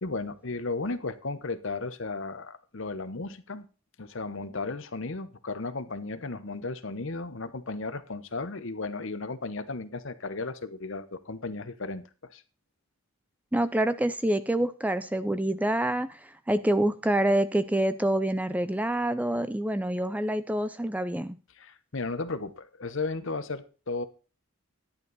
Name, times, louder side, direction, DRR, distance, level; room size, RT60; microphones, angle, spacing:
voice 1, 0.0-3.7 4.0-12.4 21.5-24.1, left 3 dB, 60° left, 12 dB, 0.9 m, -35 dB
voice 2, 13.5-21.4, right 1 dB, 5° right, 13 dB, 0.4 m, -27 dB
10.5 x 9.4 x 4.1 m, 0.35 s
head